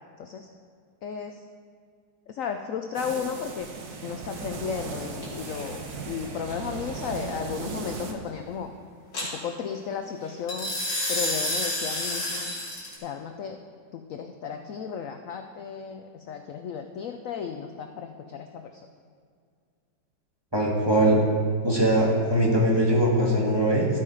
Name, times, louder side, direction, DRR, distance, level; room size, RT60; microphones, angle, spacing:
voice 1, 0.2-0.5 1.0-1.4 2.3-3.7 4.0-8.7 9.2-10.7 11.1-12.5 13.0-13.6 13.9-18.9, left 7 dB, 70° left, 6 dB, 0.8 m, -34 dB
sound 1, 2.9-8.1, right 4 dB, 60° right, 1.5 m, -37 dB
sound 2, 5.2-5.6 9.1-9.3 10.5-12.9, left 1 dB, 55° left, 3.5 m, -29 dB
voice 2, 20.5-21.2 21.6-23.9, right 1 dB, 15° right, -4 dB, 1.7 m, -21 dB
13.0 x 8.7 x 4.9 m, 2.1 s
omnidirectional pair, 2.0 m